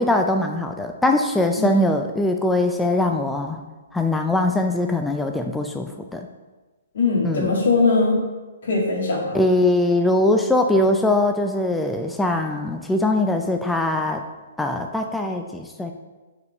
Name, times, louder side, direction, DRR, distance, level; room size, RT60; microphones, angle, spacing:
voice 1, 0.0-3.6 3.9-6.3 7.2-7.5 9.3-14.2 14.6-15.9, left 1 dB, 5° left, 3 dB, 0.3 m, -21 dB
voice 2, 6.9-8.2 8.6-9.4, left 3 dB, 70° left, -2 dB, 2.0 m, -20 dB
4.8 x 4.7 x 5.4 m, 1.3 s
hypercardioid pair, 140°, 0 cm